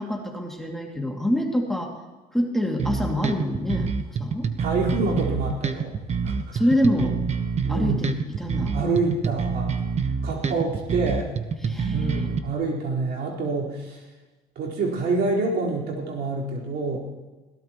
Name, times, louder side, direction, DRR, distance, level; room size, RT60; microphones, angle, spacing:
voice 1, 0.0-1.9 2.3-3.9 4.2-4.5 6.5-7.2 7.7-8.1 8.4-8.7 11.6-12.3, left 1 dB, ahead, 0 dB, 2.5 m, -25 dB
sound 1, 2.8-12.4, right 5 dB, 40° right, 1.1 m, -27 dB
voice 2, 4.6-6.0 6.2-6.5 7.6-8.1 8.7-9.7 10.2-11.3 11.9-14.0 14.5-17.0, right 3 dB, 75° right, -3 dB, 4.4 m, -27 dB
21.5 x 17.5 x 3.1 m, 1.2 s
cardioid pair, 110°, 17 cm